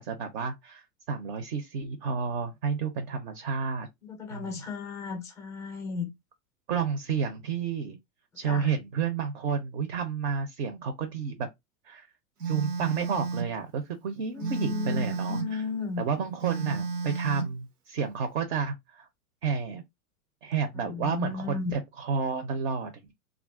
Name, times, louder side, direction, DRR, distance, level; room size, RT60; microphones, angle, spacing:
voice 1, 0.0-3.9 4.3-4.7 6.7-8.0 8.4-11.5 11.8-12.1 12.5-15.6 16.0-19.1 19.4-19.8 20.4-23.1, right 6 dB, 45° right, 0.5 m, -31 dB
voice 2, 4.0-6.1 8.5-8.7 14.3-16.0 20.8-21.7, left 5 dB, 10° left, 0.4 m, -34 dB
Telephone, 12.4-13.6 14.4-15.6 16.4-17.6, right 5 dB, 90° right, 0.9 m, -32 dB
2.4 x 2.1 x 3.5 m
hypercardioid pair, 125°, 45 cm